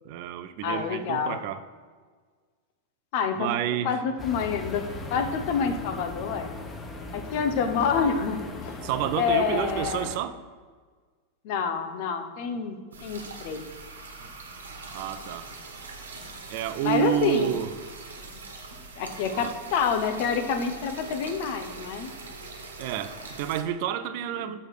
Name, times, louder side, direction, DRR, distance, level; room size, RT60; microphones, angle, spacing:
voice 1, 0.0-1.6 3.3-4.0 8.8-10.4 14.9-15.5 16.5-17.8 19.3-19.5 22.8-24.6, right 11 dB, 45° right, 12 dB, 0.5 m, -29 dB
voice 2, 0.6-1.4 3.1-3.5 3.8-4.8 5.1-6.5 7.1-8.8 9.1-10.1 11.4-13.6 16.8-17.5 19.0-22.1, left 6 dB, 45° left, 7 dB, 0.9 m, -27 dB
sound 1, 4.2-10.2, left 3 dB, 20° left, 1.0 m, -38 dB
sound 2, 12.9-23.6, right 3 dB, 70° right, 1.3 m, -42 dB
6.3 x 6.2 x 6.6 m, 1.5 s
figure-of-eight pair, 90°, 0 cm